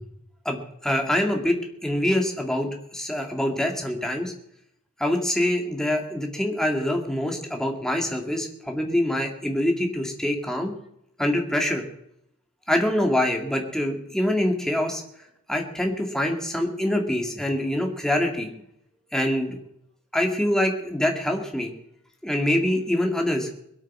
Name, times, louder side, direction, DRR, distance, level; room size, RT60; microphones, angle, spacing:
voice 1, 0.4-4.3 5.0-10.7 11.2-11.8 12.7-15.0 15.5-18.5 19.1-19.6 20.1-21.7 22.2-23.5, left 1 dB, ahead, 2 dB, 2.3 m, -25 dB
21.5 x 8.8 x 6.2 m, 0.76 s
head